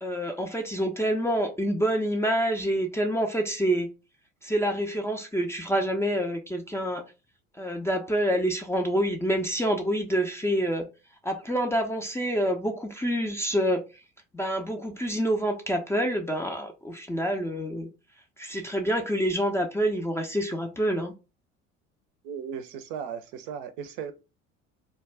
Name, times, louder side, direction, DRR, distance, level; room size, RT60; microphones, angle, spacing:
voice 1, 0.0-3.9 4.4-7.0 7.6-10.9 11.2-13.8 14.3-17.9 18.4-21.1, equal, 5° left, 0.4 m, -27 dB
voice 2, 22.2-24.1, right 7 dB, 60° right, 0.6 m, -36 dB
2.3 x 2.1 x 3.3 m
hypercardioid pair, 65°, 37 cm